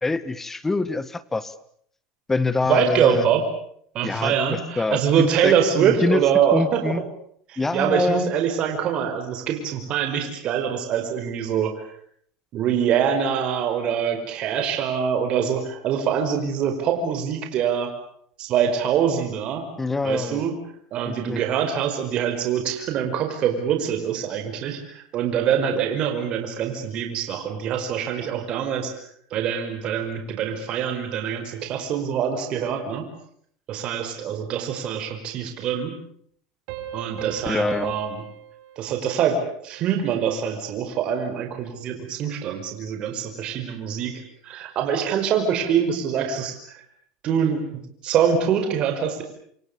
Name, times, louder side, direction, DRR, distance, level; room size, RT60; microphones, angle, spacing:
voice 1, 0.0-1.5 2.3-3.3 4.0-7.0 7.6-8.3 19.8-20.4 21.0-21.4 37.4-37.9, left 3 dB, 15° left, 16 dB, 1.7 m, -25 dB
voice 2, 2.7-3.4 3.9-7.0 7.5-11.7 12.5-17.9 18.4-19.6 20.0-20.5 20.9-29.0 29.3-33.0 33.7-35.9 36.9-38.2 38.7-44.1 44.4-46.8 47.2-47.7 48.0-49.2, right 8 dB, 50° right, 5 dB, 5.2 m, -24 dB
Piano, 36.7-40.0, right 10 dB, 70° right, 6.7 m, -38 dB
28.0 x 27.5 x 7.0 m, 0.65 s
supercardioid pair, 120°, 2 cm